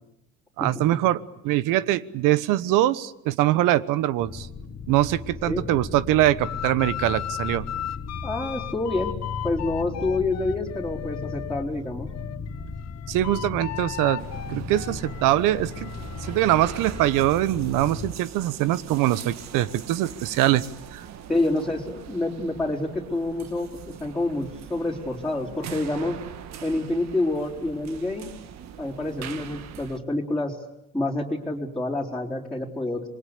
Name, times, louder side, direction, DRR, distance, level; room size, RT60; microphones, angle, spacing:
voice 1, 0.6-4.5 4.9-7.7 13.1-14.2 14.5-15.9 16.2-20.6 20.9-21.0, right 14 dB, 75° right, 17 dB, 1.1 m, -23 dB
sound 1, 4.2-18.1, left 5 dB, 35° left, 1.7 m, -36 dB
sound 2, 6.4-11.7 12.1-17.4, left 11 dB, 50° left, 1.3 m, -37 dB
voice 2, 8.2-9.1 9.4-12.1 21.3-26.2 26.6-28.3 28.8-30.6 30.9-33.1, left 2 dB, ahead, -5 dB, 4.2 m, -27 dB
sound 3, 14.2-30.0, right 9 dB, 55° right, 1.7 m, -42 dB
27.0 x 22.0 x 8.3 m, 0.84 s
cardioid pair, 105°, 32 cm